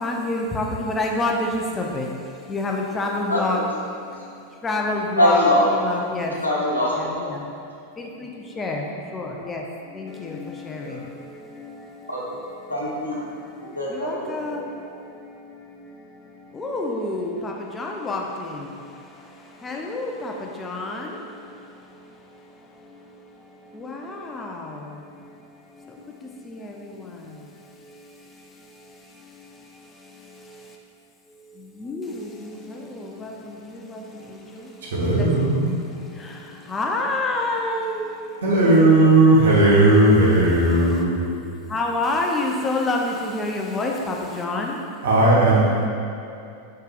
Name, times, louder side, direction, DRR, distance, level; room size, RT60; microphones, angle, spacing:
voice 1, 0.0-2.1 2.5-3.6 4.6-6.3 6.9-7.4 8.6-8.8 9.1-9.6 10.0-10.4 10.7-10.8 14.0-14.6 16.6-18.5 19.6-20.3 20.6-21.1 23.8-24.5 31.8-32.1 33.2-33.3 35.2-35.3 36.7-38.2 38.7-39.0 41.7-44.7, left 2 dB, 15° left, 0 dB, 0.5 m, -27 dB
voice 2, 3.3-3.6 5.2-5.6 6.4-6.9 10.8-11.0 12.1-12.4 12.7-13.2 13.7-14.6, left 1 dB, 80° left, -5 dB, 0.9 m, -22 dB
voice 3, 34.9-35.7 38.4-41.2 45.0-45.7, right 2 dB, 60° right, -6 dB, 1.2 m, -16 dB
4.7 x 4.5 x 2.5 m, 2.7 s
figure-of-eight pair, 90°, 0 cm